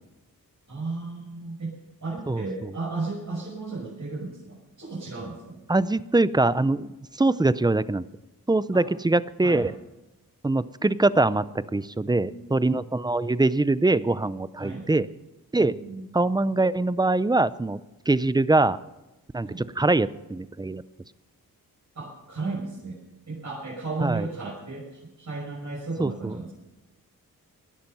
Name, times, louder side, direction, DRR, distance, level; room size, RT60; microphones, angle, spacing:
voice 1, 0.7-1.8 2.0-5.6 8.7-8.8 9.4-9.6 12.0-12.5 14.6-14.9 15.6-16.0 19.4-19.6 21.9-23.0 23.3-26.5, right 3 dB, 50° right, -6 dB, 6.1 m, -34 dB
voice 2, 2.3-2.7 5.7-8.0 8.5-9.7 10.4-11.4 11.7-15.1 15.5-15.7 16.1-17.8 18.1-18.8 19.3-20.8 24.0-24.3 26.0-26.4, right 2 dB, 10° right, 16 dB, 0.5 m, -23 dB
18.5 x 11.5 x 5.5 m, 1.0 s
cardioid pair, 90°, 35 cm